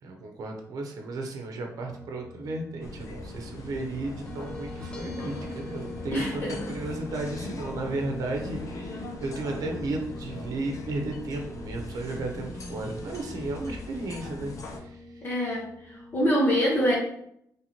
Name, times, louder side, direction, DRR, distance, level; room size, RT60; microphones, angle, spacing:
voice 1, 0.0-15.2, right 2 dB, 65° right, 3 dB, 0.8 m, -34 dB
sound 1, 1.9-16.1, left 2 dB, 15° left, 0.7 m, -44 dB
sound 2, 2.8-14.8, left 2 dB, 55° left, 0.7 m, -40 dB
voice 2, 6.1-6.6 15.2-16.9, equal, 35° left, -5 dB, 1.0 m, -25 dB
3.3 x 3.0 x 4.3 m, 0.72 s
cardioid pair, 125°, 7 cm